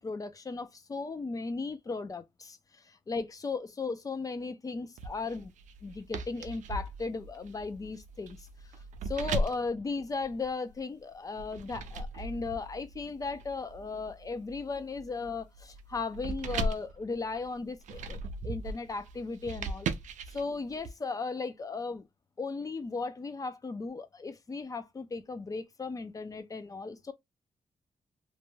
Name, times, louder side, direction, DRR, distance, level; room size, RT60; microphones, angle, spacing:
voice 1, 0.0-5.5 5.8-8.5 9.1-18.2 18.4-19.9 20.3-22.1 22.4-27.1, left 4 dB, 30° left, 0.5 m, -36 dB
sound 1, 5.0-10.8 11.4-20.9, right 2 dB, 80° right, 0.4 m, -38 dB
2.6 x 2.2 x 3.0 m
cardioid pair, 105°, 13 cm